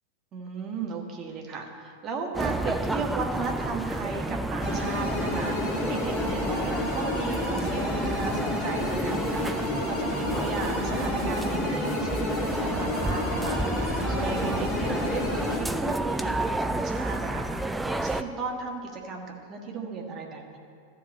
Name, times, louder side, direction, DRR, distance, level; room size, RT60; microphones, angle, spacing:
voice 1, 0.3-20.6, right 4 dB, 30° right, 1 dB, 1.6 m, -35 dB
sound 1, 2.3-18.2, right 2 dB, 5° right, 0.4 m, -30 dB
sound 2, 4.6-15.6, left 2 dB, 30° left, 1.8 m, -31 dB
13.0 x 4.9 x 8.0 m, 2.4 s
figure-of-eight pair, 90°, 0 cm